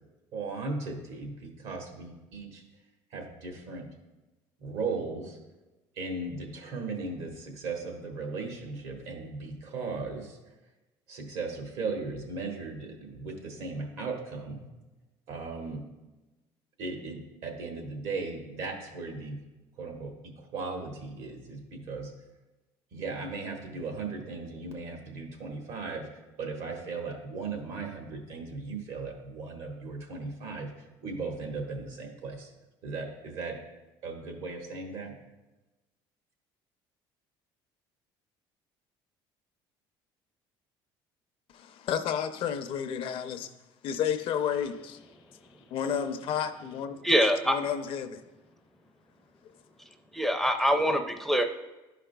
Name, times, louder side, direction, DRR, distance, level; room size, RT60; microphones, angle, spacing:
voice 1, 0.3-2.6 3.1-3.9 4.6-5.4 5.9-10.4 11.1-14.6 15.3-15.8 16.8-19.4 19.8-22.1 22.9-26.1 26.4-30.7 31.0-32.5 32.8-33.6 34.0-35.2, right 4 dB, 75° right, 1.4 m, -37 dB
voice 2, 41.5-43.5 43.8-45.0 45.7-47.0 47.5-48.2, left 8 dB, 60° left, 0.5 m, -31 dB
voice 3, 47.0-47.6 50.1-51.4, equal, ahead, 0.4 m, -24 dB
11.0 x 4.9 x 2.2 m
cardioid pair, 110°, 10 cm